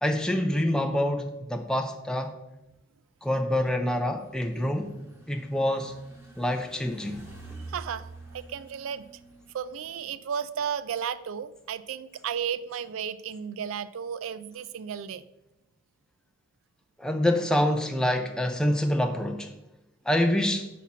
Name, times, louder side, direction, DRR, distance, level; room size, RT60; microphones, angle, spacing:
voice 1, 0.0-2.4 3.2-5.0 5.3-6.0 6.4-7.2 7.5-7.6 17.0-19.5 20.1-20.7, left 1 dB, 5° left, 0.4 m, -26 dB
sound 1, 3.9-10.2, right 2 dB, 15° right, 1.2 m, -48 dB
voice 2, 7.6-9.0 9.5-15.2, right 7 dB, 75° right, 0.4 m, -34 dB
5.7 x 4.2 x 6.0 m
head